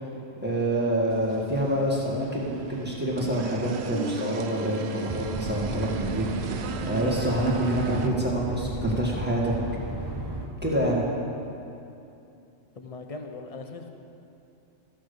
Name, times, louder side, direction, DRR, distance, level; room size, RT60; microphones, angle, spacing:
voice 1, 0.4-9.5 10.6-11.0, right 1 dB, 10° right, -4 dB, 1.7 m, -27 dB
sound 1, 1.1-8.1, right 5 dB, 60° right, 0.8 m, -37 dB
sound 2, 5.1-10.5, right 2 dB, 25° right, 0.8 m, -34 dB
voice 2, 12.8-13.9, left 3 dB, 35° left, 4 dB, 0.6 m, -39 dB
13.5 x 6.1 x 6.8 m, 2.7 s
omnidirectional pair, 1.4 m